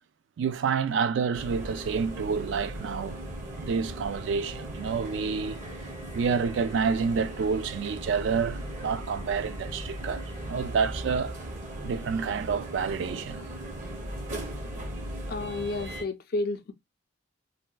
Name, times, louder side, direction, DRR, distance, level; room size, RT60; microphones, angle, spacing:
voice 1, 0.4-3.2 3.6-5.6 6.1-11.3 11.8-13.4, right 5 dB, 65° right, 0.3 m, -28 dB
sound 1, 1.3-16.0, right 1 dB, 40° right, 0.7 m, -38 dB
voice 2, 15.3-16.7, left 2 dB, 50° left, 0.4 m, -31 dB
3.5 x 2.2 x 2.2 m
head